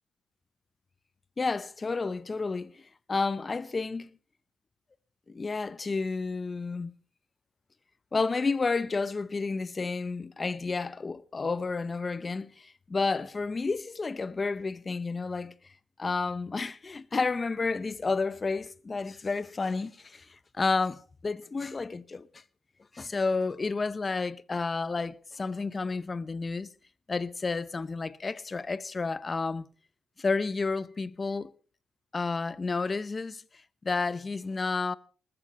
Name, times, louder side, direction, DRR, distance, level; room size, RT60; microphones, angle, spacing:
voice 1, 1.4-2.8 3.1-4.1 5.3-6.9 8.1-15.5 16.0-22.3 22.9-26.7 27.1-29.7 30.2-31.5 32.1-33.4 33.8-34.9, left 4 dB, 30° left, 0.7 m, -31 dB
19.5 x 14.0 x 4.2 m
cardioid pair, 90°, 0 cm